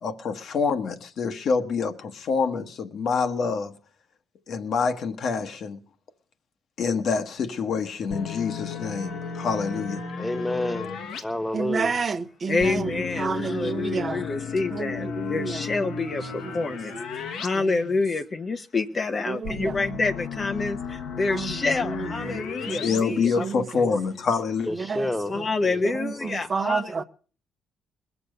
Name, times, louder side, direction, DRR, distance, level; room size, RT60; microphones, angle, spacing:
voice 1, 0.0-3.7 4.5-5.8 6.8-10.0 22.7-24.7, left 5 dB, 65° left, 1.3 m, -26 dB
sound 1, 8.1-11.2 12.6-17.5 17.8-17.9 19.4-23.0, left 5 dB, 80° left, 1.4 m, -34 dB
voice 2, 10.2-10.9 11.2-11.9 24.7-25.3 26.2-26.3, left 1 dB, 10° left, 1.2 m, -28 dB
voice 3, 11.5-14.3 14.7-16.0 16.2-16.5 17.5-17.8 19.3-20.0 21.3-23.9 24.7-25.5 25.8-27.0, right 5 dB, 40° right, 0.8 m, -31 dB
voice 4, 12.5-24.0 25.3-27.0, left 3 dB, 35° left, 0.7 m, -28 dB
21.0 x 7.1 x 6.6 m
cardioid pair, 90°, 0 cm